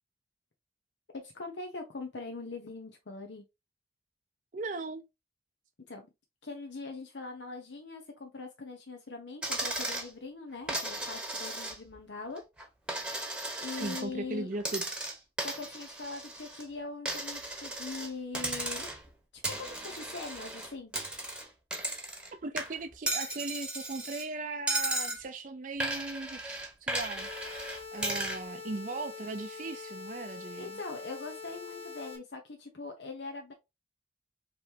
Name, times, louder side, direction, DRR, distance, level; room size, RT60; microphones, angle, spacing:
voice 1, 1.1-3.4 5.9-6.1 6.4-12.4 13.6-14.5 15.4-18.9 19.3-20.9 30.6-33.5, left 3 dB, 85° left, 0.9 m, -42 dB
voice 2, 4.5-5.1 13.7-15.0 22.4-30.8, right 3 dB, 45° right, 0.5 m, -38 dB
Coin (dropping), 9.4-10.1 10.7-12.0 12.4-14.1 14.6-16.6 17.1-18.1 18.3-19.1 19.4-22.3 22.6-24.3 24.7-25.2 25.8-28.4, right 1 dB, 5° right, 1.0 m, -35 dB
sound 1, 27.2-32.2, left 5 dB, 35° left, 1.0 m, -44 dB
5.1 x 3.1 x 2.7 m
head